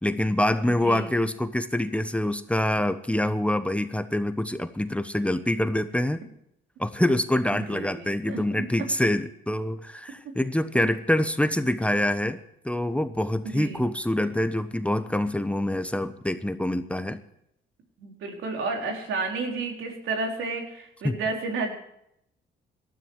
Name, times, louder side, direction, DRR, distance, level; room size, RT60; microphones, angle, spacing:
voice 1, 0.0-6.2 6.8-12.4 12.6-17.2 21.0-21.2, left 1 dB, 5° left, 9 dB, 1.1 m, -25 dB
voice 2, 0.7-1.1 7.5-8.4 13.4-13.8 18.0-21.7, right 3 dB, 80° right, 2 dB, 4.0 m, -31 dB
18.5 x 13.5 x 4.7 m, 0.76 s
cardioid pair, 90°, 20 cm